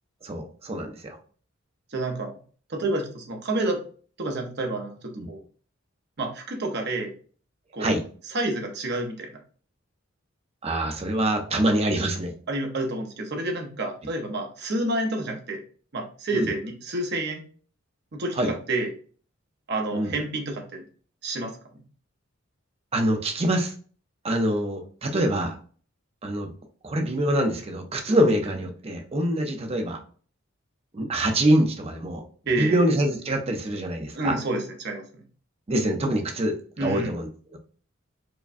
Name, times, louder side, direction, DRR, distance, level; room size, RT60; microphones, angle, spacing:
voice 1, 0.2-1.2 5.2-5.3 7.8-8.0 10.6-12.3 16.3-16.5 18.4-18.5 19.9-20.1 22.9-23.7 24.2-25.6 26.2-26.5 26.8-30.0 30.9-32.2 32.6-34.4 35.7-37.6, right 1 dB, 30° right, 4 dB, 0.6 m, -25 dB
voice 2, 1.9-2.3 2.7-3.8 4.2-5.4 6.2-7.1 7.7-7.9 8.3-9.3 12.5-15.6 15.9-17.4 18.1-18.3 18.7-18.9 19.7-20.8 21.2-21.5 32.5-32.8 34.1-35.0 36.8-37.1, right 2 dB, 55° right, 2 dB, 0.8 m, -29 dB
4.7 x 2.2 x 2.6 m, 0.42 s
head